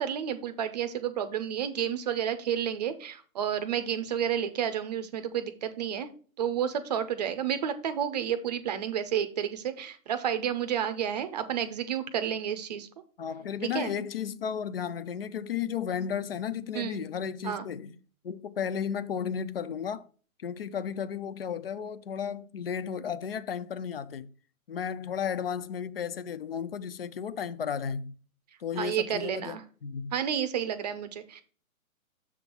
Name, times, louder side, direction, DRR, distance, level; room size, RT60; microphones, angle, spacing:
voice 1, 0.0-6.1 6.4-12.9 13.6-13.9 16.7-17.0 17.4-17.7 28.8-29.6 30.1-31.4, right 9 dB, 30° right, 0.6 m, -31 dB
voice 2, 13.2-18.0 18.2-20.1 20.4-24.3 24.7-28.2 28.6-29.6 29.8-30.1, left 7 dB, 45° left, 0.5 m, -34 dB
7.1 x 3.6 x 6.0 m
hypercardioid pair, 140°, 43 cm